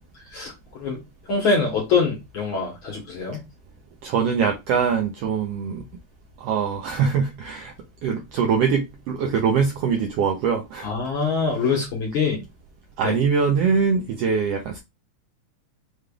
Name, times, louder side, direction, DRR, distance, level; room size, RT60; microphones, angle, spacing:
voice 1, 1.3-3.4 10.8-12.4 13.0-13.1, left 4 dB, 60° left, 1.5 m, -24 dB
voice 2, 4.0-5.8 6.4-7.7 8.0-10.9 13.0-14.8, right 6 dB, 80° right, 1.4 m, -23 dB
5.3 x 3.2 x 2.3 m
omnidirectional pair, 3.4 m